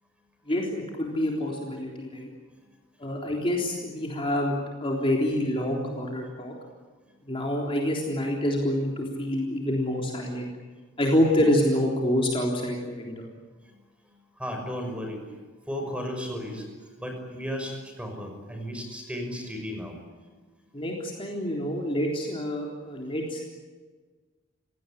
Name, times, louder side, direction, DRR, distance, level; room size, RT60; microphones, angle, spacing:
voice 1, 0.5-2.3 3.0-6.5 7.3-10.5 11.0-13.3 20.7-23.4, left 1 dB, 30° left, -1 dB, 3.7 m, -27 dB
voice 2, 14.4-15.3 15.7-16.7 17.0-20.0, equal, 5° right, 4 dB, 5.9 m, -34 dB
28.5 x 17.5 x 10.0 m, 1.4 s
head